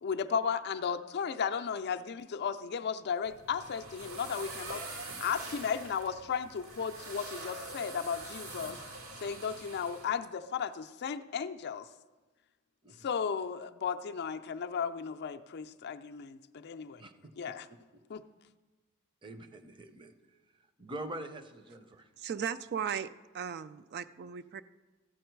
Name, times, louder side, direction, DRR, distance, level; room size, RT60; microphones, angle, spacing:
voice 1, 0.0-4.9 5.2-8.8 9.2-11.9 13.0-17.0 17.4-17.7 18.1-18.2, left 6 dB, 50° left, 8 dB, 0.4 m, -35 dB
sound 1, 3.2-10.1, right 2 dB, 85° right, 2.3 m, -44 dB
voice 2, 17.0-17.3 17.7-17.8 19.2-20.1 20.8-22.1, right 1 dB, 20° right, 9 dB, 0.7 m, -44 dB
voice 3, 22.2-23.1 23.3-24.6, right 7 dB, 50° right, 12 dB, 0.3 m, -36 dB
13.5 x 8.6 x 4.5 m, 1.2 s
head